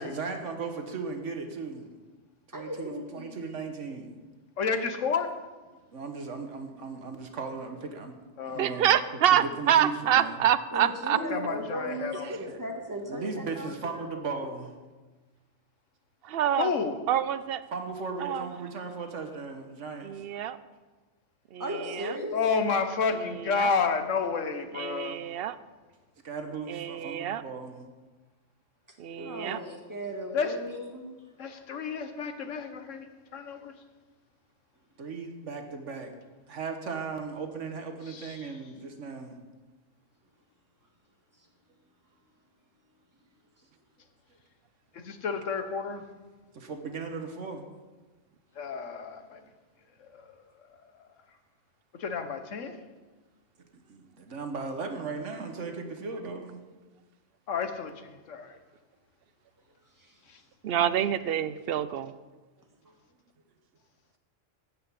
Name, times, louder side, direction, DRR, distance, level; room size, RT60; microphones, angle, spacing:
voice 1, 0.0-1.9 2.5-4.1 5.9-8.2 8.4-8.9 9.1-10.4 12.5-12.6 13.1-14.7 17.7-20.2 26.2-27.9 35.0-36.1 36.5-39.4 46.5-47.7 53.9-56.6 62.8-62.9, right 4 dB, 75° right, 5 dB, 1.5 m, -37 dB
voice 2, 2.5-3.4 10.7-14.3 21.6-22.4 29.2-31.1 60.0-60.2, equal, 15° right, 0 dB, 1.8 m, -36 dB
voice 3, 4.6-5.3 8.4-8.7 11.3-12.3 16.6-17.0 22.3-25.2 30.3-30.5 31.4-33.1 33.3-33.7 38.1-38.5 44.9-46.0 48.6-49.4 50.0-50.4 52.0-52.8 57.5-58.6 60.3-60.4 60.8-60.9, left 5 dB, 90° left, 8 dB, 1.4 m, -31 dB
voice 4, 8.6-11.2 16.2-16.7 17.1-17.6 18.2-18.5 20.0-20.6 21.5-22.1 23.5-23.7 24.7-25.6 26.7-27.4 29.0-29.6 60.6-62.1, right 10 dB, 60° right, 14 dB, 0.7 m, -26 dB
12.5 x 5.7 x 8.3 m, 1.2 s
omnidirectional pair, 1.3 m